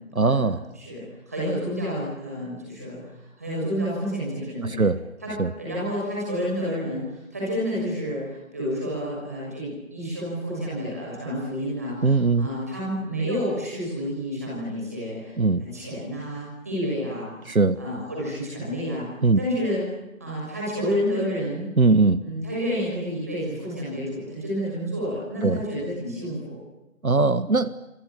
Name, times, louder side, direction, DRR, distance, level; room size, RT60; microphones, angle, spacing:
voice 1, 0.1-0.6 4.6-5.0 5.4-5.5 12.0-12.5 15.4-15.6 17.5-17.8 19.2-19.4 21.8-22.2 25.4-25.6 27.0-27.7, right 3 dB, 80° right, 15 dB, 1.4 m, -20 dB
voice 2, 0.7-3.0 3.4-4.9 5.2-15.3 15.6-19.0 19.4-19.8 20.2-21.6 22.2-26.6, equal, 10° right, -5 dB, 6.4 m, -30 dB
27.0 x 26.5 x 7.4 m, 0.95 s
figure-of-eight pair, 180°, 42 cm